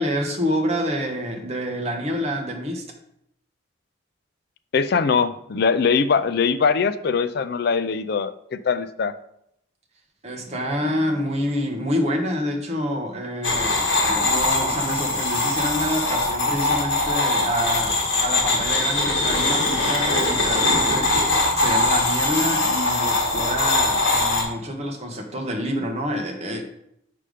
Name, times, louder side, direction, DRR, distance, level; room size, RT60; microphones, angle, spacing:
voice 1, 0.0-2.8 10.2-13.7 14.0-26.7, equal, 30° right, 2 dB, 1.0 m, -27 dB
voice 2, 4.7-9.1, left 5 dB, 50° left, 13 dB, 0.4 m, -22 dB
sound 1, 13.4-24.4, left 2 dB, 65° left, 1.8 m, -22 dB
5.6 x 5.1 x 4.9 m, 0.75 s
head